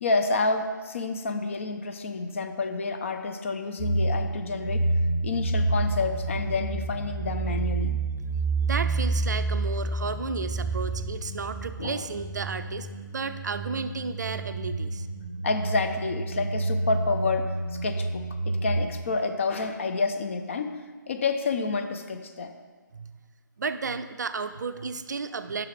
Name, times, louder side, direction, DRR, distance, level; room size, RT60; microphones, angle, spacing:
voice 1, 0.0-4.9 5.2-8.0 11.8-12.0 15.4-17.5 17.8-20.7 21.1-22.5, left 3 dB, 40° left, 7 dB, 0.4 m, -29 dB
sound 1, 3.8-18.9, right 2 dB, 20° right, 0.7 m, -29 dB
voice 2, 8.6-15.1 22.9-23.1 23.6-25.7, right 4 dB, 60° right, 10 dB, 0.4 m, -33 dB
5.7 x 4.6 x 5.1 m, 1.4 s
figure-of-eight pair, 145°, 11 cm